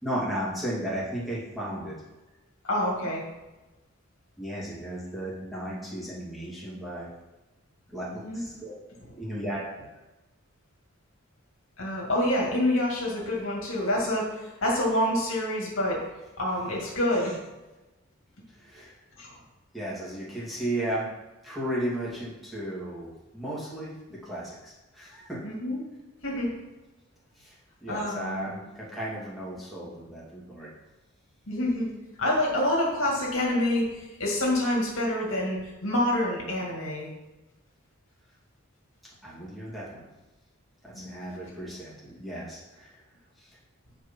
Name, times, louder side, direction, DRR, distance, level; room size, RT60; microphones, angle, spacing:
voice 1, 0.0-2.0 4.4-7.1 7.9-8.8 9.2-9.8 18.6-18.9 19.7-21.1 21.4-25.4 27.4-30.7 39.2-40.1 40.8-43.0 43.4-43.6, right 1 dB, ahead, -8 dB, 2.5 m, -35 dB
voice 2, 2.6-3.2 8.2-8.4 11.8-16.0 16.4-17.4 19.2-19.4 25.4-25.8 26.2-26.5 27.9-28.5 31.5-31.9 32.2-37.1 40.9-41.1, left 1 dB, 60° left, -3 dB, 2.4 m, -27 dB
9.0 x 4.9 x 5.5 m, 1.1 s
head